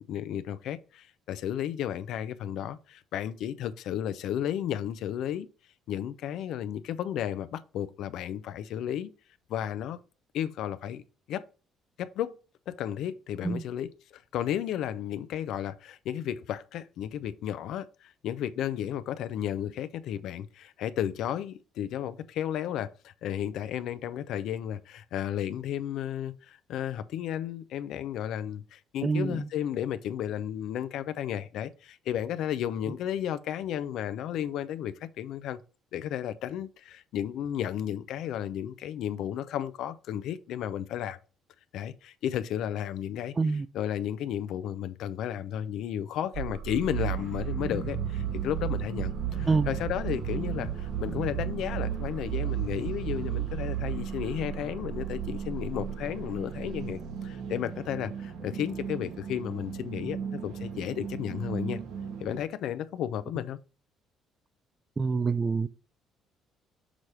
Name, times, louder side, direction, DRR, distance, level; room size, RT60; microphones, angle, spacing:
voice 1, 0.0-5.5 5.9-9.1 9.5-10.0 10.3-11.0 11.3-11.4 12.0-12.4 12.7-35.6 35.9-41.2 41.7-61.8 62.2-63.6, left 10 dB, 75° left, 0.5 m, -33 dB
voice 2, 29.0-29.4 43.4-43.7 49.5-49.7 65.0-65.7, right 4 dB, 25° right, 0.4 m, -26 dB
sound 1, 46.3-57.2, right 10 dB, 60° right, 1.9 m, -34 dB
sound 2, 47.0-62.4, right 6 dB, 75° right, 1.2 m, -39 dB
6.2 x 3.2 x 5.4 m
cardioid pair, 95°, 0 cm